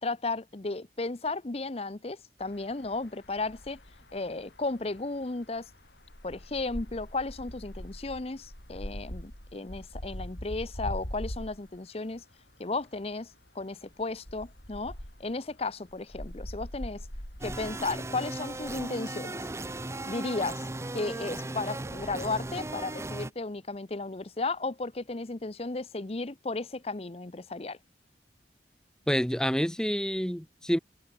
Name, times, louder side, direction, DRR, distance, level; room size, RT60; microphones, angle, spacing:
voice 1, 0.0-3.8 4.1-5.7 6.2-12.2 12.6-13.3 13.5-17.1 17.4-19.4 20.1-20.6 20.9-27.8, left 3 dB, 35° left, 0.8 m, -34 dB
sound 1, 2.4-11.9 12.1-12.2 12.7-13.1 13.3-13.5 13.9-18.9, equal, 80° left, 7.9 m, -42 dB
sound 2, 17.4-23.3, right 2 dB, 15° right, 0.7 m, -37 dB
voice 2, 29.1-30.8, equal, 5° left, 1.1 m, -28 dB
head